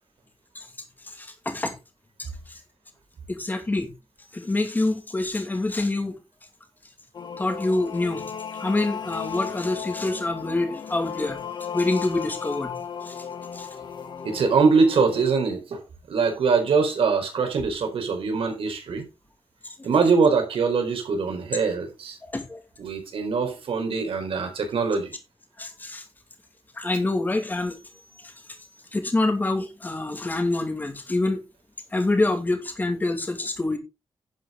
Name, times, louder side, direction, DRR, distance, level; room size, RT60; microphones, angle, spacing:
voice 1, 1.2-1.7 2.2-2.3 3.3-3.9 4.3-6.1 7.4-8.2 8.6-11.4 11.7-12.7 13.1-13.2 13.5-13.7 22.2-22.6 25.6-26.0 26.8-27.7 28.9-31.4 31.9-33.8, left 2 dB, 20° left, 2.4 m, -26 dB
sound 1, 7.1-15.2, left 7 dB, 55° left, 1.4 m, -35 dB
voice 2, 14.2-15.8 16.1-19.0 19.8-22.2 22.8-25.1, right 5 dB, 85° right, 4.4 m, -23 dB
11.5 x 9.3 x 3.9 m
wide cardioid pair, 165°, 9 cm